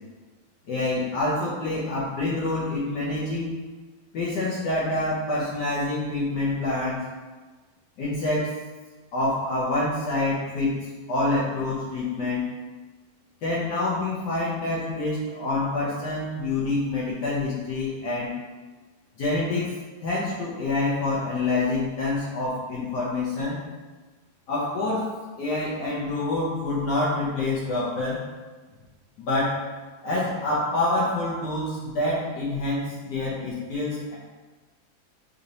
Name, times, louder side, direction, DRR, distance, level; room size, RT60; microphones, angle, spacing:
voice 1, 0.7-3.5 4.1-7.1 8.0-8.6 9.1-10.8 11.1-12.5 13.4-18.3 19.2-19.7 20.0-23.6 24.5-28.3 29.2-29.6 30.0-34.1, left 2 dB, 65° left, -7 dB, 1.2 m, -27 dB
4.1 x 2.9 x 2.6 m, 1.3 s
omnidirectional pair, 2.2 m